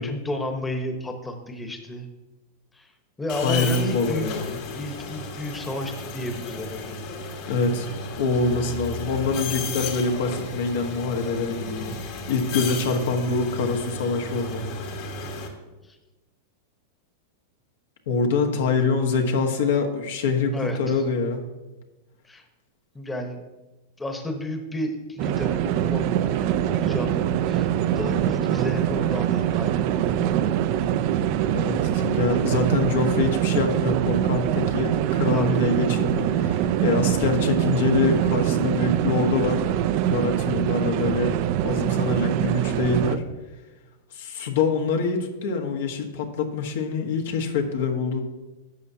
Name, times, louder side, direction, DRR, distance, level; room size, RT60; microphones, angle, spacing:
voice 1, 0.0-2.1 2.7-2.9 3.2-4.4 4.7-7.0 15.8-16.0 18.4-18.6 18.9-19.0 20.5-21.0 22.2-22.4 22.9-23.4 24.0-30.3 35.3-35.6, left 1 dB, 10° left, 5 dB, 1.0 m, -32 dB
sound 1, 3.3-15.5, left 4 dB, 55° left, 1.6 m, -34 dB
voice 2, 3.4-4.6 7.5-7.9 8.2-14.7 18.1-21.4 31.5-41.4 41.6-43.2 44.1-48.2, left 4 dB, 75° left, 3 dB, 1.2 m, -25 dB
sound 2, 25.2-43.2, right 10 dB, 55° right, 0.5 m, -23 dB
11.5 x 7.1 x 2.8 m, 1.1 s
hypercardioid pair, 120°, 0 cm